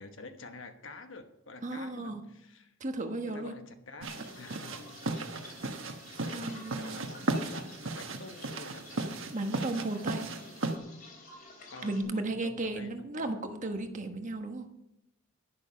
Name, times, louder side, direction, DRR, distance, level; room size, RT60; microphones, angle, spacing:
voice 1, 0.0-2.7 3.3-4.8 5.5-5.7 6.2-8.9 11.7-13.0, left 3 dB, 70° left, 7 dB, 1.2 m, -48 dB
voice 2, 1.6-2.2 2.8-3.5 6.3-7.0 9.3-10.3 11.8-14.7, right 2 dB, 40° right, 5 dB, 1.3 m, -34 dB
sound 1, 4.0-12.0, left 2 dB, 45° left, 3.1 m, -51 dB
sound 2, 4.0-10.8, right 2 dB, 75° right, 1.3 m, -36 dB
11.0 x 10.5 x 5.6 m, 0.85 s
head